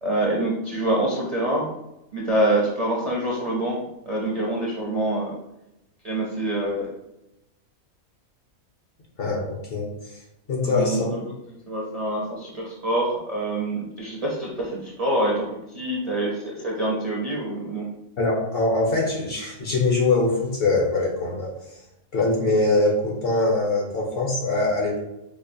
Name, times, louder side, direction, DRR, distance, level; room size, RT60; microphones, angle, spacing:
voice 1, 0.0-1.7 2.1-5.3 6.0-6.9 10.6-11.3 11.7-17.9, right 1 dB, 45° right, -4 dB, 0.5 m, -26 dB
voice 2, 9.2-9.9 10.5-11.1 18.2-21.5 22.1-25.0, left 2 dB, 50° left, -2 dB, 0.8 m, -23 dB
5.1 x 2.3 x 2.6 m, 0.88 s
omnidirectional pair, 1.5 m